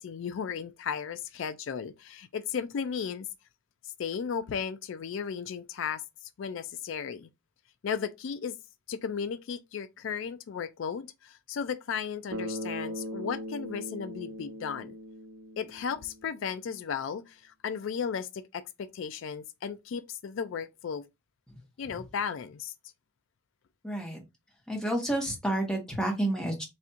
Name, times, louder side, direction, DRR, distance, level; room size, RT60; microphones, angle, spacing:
voice 1, 0.0-3.3 3.8-6.0 6.4-7.3 7.8-8.5 8.9-14.9 15.6-21.0 21.8-22.7, left 7 dB, 70° left, 0.3 m, -35 dB
Bass guitar, 12.3-16.3, equal, 90° right, 0.7 m, -39 dB
voice 2, 23.8-24.2 24.7-26.6, right 1 dB, 5° left, 1.1 m, -30 dB
4.2 x 2.5 x 3.5 m
head